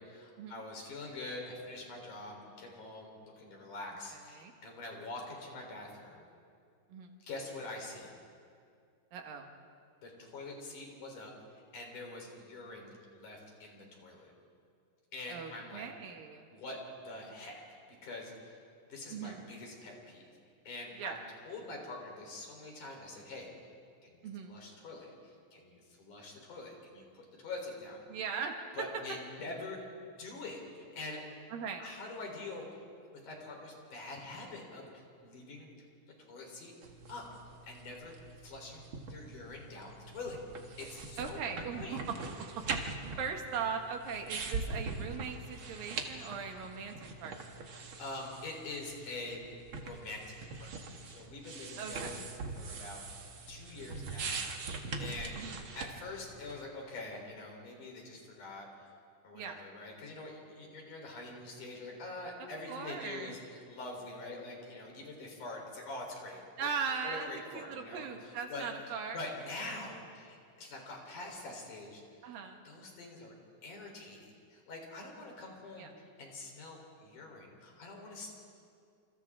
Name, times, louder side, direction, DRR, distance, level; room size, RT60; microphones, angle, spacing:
voice 1, 0.0-6.2 7.2-8.2 10.0-14.3 15.1-15.9 16.5-17.6 18.0-18.6 18.9-20.2 20.7-21.2 21.5-23.5 24.0-28.0 28.8-29.8 30.2-31.2 31.8-32.7 33.2-35.7 36.2-36.7 37.1-37.3 37.7-38.1 38.4-38.8 39.1-40.4 40.8-42.0 48.0-49.4 49.8-52.2 52.6-53.0 53.5-54.4 55.0-55.4 55.8-58.7 59.2-66.7 67.0-68.7 69.1-72.0 72.7-73.3 73.6-78.3, left 2 dB, 65° left, 0 dB, 5.4 m, -45 dB
voice 2, 4.1-4.5 6.9-7.2 9.1-9.5 15.3-16.5 19.1-19.5 20.9-21.2 24.2-24.6 28.1-29.0 31.5-31.9 41.2-42.8 43.2-47.6 51.8-52.1 55.3-55.6 59.3-59.6 62.4-63.3 66.6-69.2 72.2-72.6 75.8-75.9, right 6 dB, 85° right, 3 dB, 3.4 m, -40 dB
sound 1, 36.8-56.6, right 4 dB, 50° right, 1.8 m, -42 dB
30.0 x 28.0 x 3.7 m, 2.3 s
omnidirectional pair, 4.0 m